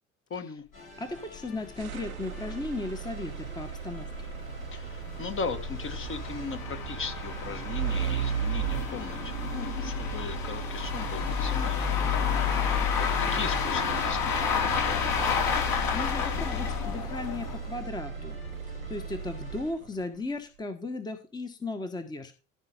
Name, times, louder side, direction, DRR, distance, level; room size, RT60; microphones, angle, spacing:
voice 1, 0.3-0.6 4.7-12.3 13.2-15.0, left 5 dB, 30° left, 1.6 m, -38 dB
sound 1, 0.7-19.7, left 1 dB, 90° left, 4.8 m, -48 dB
voice 2, 1.0-4.3 15.9-18.4 18.9-22.4, left 2 dB, 10° left, 1.3 m, -36 dB
sound 2, 1.3-1.4 1.7-1.8 2.2-2.3 2.6-2.7 3.4-17.8, left 7 dB, 55° left, 4.5 m, -30 dB
sound 3, 1.8-20.0, right 7 dB, 80° right, 0.9 m, -37 dB
14.0 x 5.0 x 5.2 m
figure-of-eight pair, 65°, 41 cm